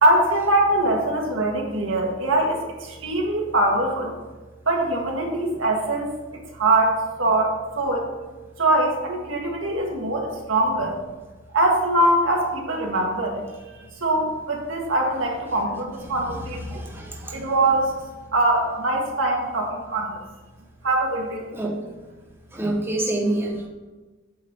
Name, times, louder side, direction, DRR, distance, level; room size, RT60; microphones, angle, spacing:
voice 1, 0.0-4.2 4.7-8.1 8.6-11.0 11.5-16.9 17.3-18.0 18.3-20.2 20.8-21.5, right 1 dB, 65° right, 0 dB, 1.7 m, -23 dB
voice 2, 16.7-17.3 21.5-21.7 22.5-23.6, right 1 dB, 10° right, -2 dB, 1.1 m, -26 dB
8.6 x 4.1 x 7.0 m, 1.2 s
head